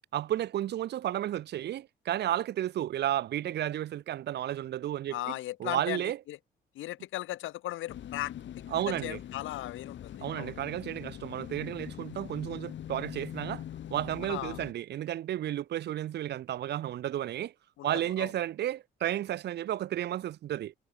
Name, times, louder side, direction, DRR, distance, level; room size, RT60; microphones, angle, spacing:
voice 1, 0.1-5.3 5.6-6.2 8.7-9.2 10.2-13.6 13.9-17.5 17.8-20.7, right 12 dB, 60° right, 0.5 m, -32 dB
voice 2, 5.1-6.4 6.7-8.3 8.9-10.5 14.3-14.6 17.8-18.3, left 15 dB, 85° left, 2.4 m, -37 dB
sound 1, 7.9-14.7, left 11 dB, 70° left, 3.3 m, -43 dB
cardioid pair, 90°, 20 cm